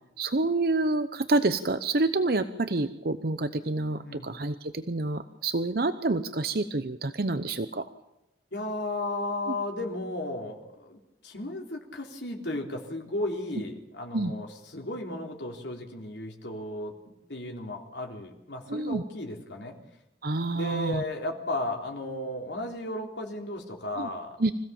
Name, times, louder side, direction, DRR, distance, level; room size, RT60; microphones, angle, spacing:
voice 1, 0.2-7.9 14.1-14.3 18.7-19.0 20.2-21.0 24.0-24.1 24.4-24.5, right 2 dB, 55° right, 11 dB, 0.8 m, -28 dB
voice 2, 8.5-19.8 20.5-24.4, left 1 dB, 85° left, 1 dB, 3.9 m, -35 dB
26.0 x 16.5 x 7.2 m, 0.87 s
head